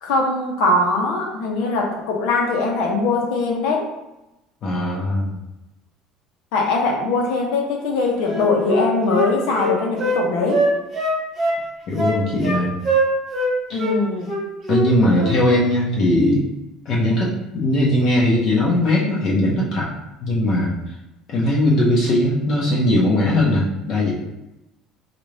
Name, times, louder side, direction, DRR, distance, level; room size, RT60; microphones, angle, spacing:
voice 1, 0.0-3.8 6.5-10.6 13.7-14.4, left 3 dB, 75° left, 0 dB, 0.9 m, -21 dB
voice 2, 4.6-5.4 11.9-12.8 13.7-13.8 14.7-16.4 16.9-19.9 20.2-20.8 21.3-24.1, left 1 dB, 40° left, -5 dB, 0.8 m, -19 dB
Wind instrument woodwind instrument, 8.2-10.2 10.5-11.6 12.0-12.6 12.8-13.5 13.8-14.0 14.3-14.9 15.2-15.4, right 1 dB, 25° right, 1.2 m, -22 dB
4.0 x 2.5 x 3.2 m, 0.95 s
cardioid pair, 160°, 0 cm